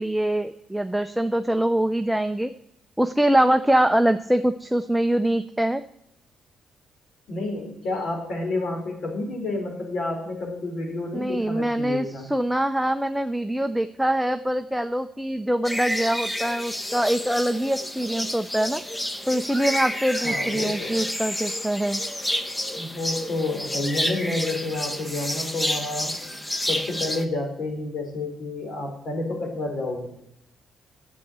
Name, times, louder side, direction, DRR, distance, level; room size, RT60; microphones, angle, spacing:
voice 1, 0.0-2.5 3.0-5.8 11.1-18.8 19.3-22.0, right 1 dB, 5° right, 8 dB, 0.5 m, -24 dB
voice 2, 7.3-12.3 20.2-21.0 22.7-26.1 26.7-30.1, left 2 dB, 65° left, 2 dB, 4.0 m, -30 dB
sound 1, 15.6-27.2, left 1 dB, 15° left, 1.0 m, -30 dB
9.7 x 7.3 x 8.7 m, 0.80 s
cardioid pair, 90°, 0 cm